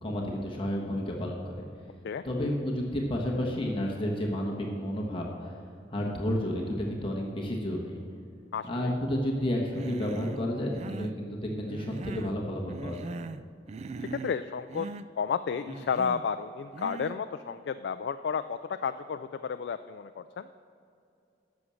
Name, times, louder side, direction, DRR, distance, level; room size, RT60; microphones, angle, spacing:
voice 1, 0.0-1.6 2.2-5.5 5.9-8.0 8.7-13.1, equal, 30° left, -2 dB, 1.3 m, -31 dB
voice 2, 8.5-8.9 14.0-14.9 15.1-20.5, left 6 dB, 65° left, 10 dB, 0.3 m, -32 dB
Human voice, 9.7-10.4 10.7-11.2 11.7-12.4 12.7-13.4 13.7-14.4 14.7-15.1 15.7-16.3 16.7-17.2, right 3 dB, 35° right, 0.3 m, -40 dB
11.0 x 7.1 x 6.4 m, 2.6 s
head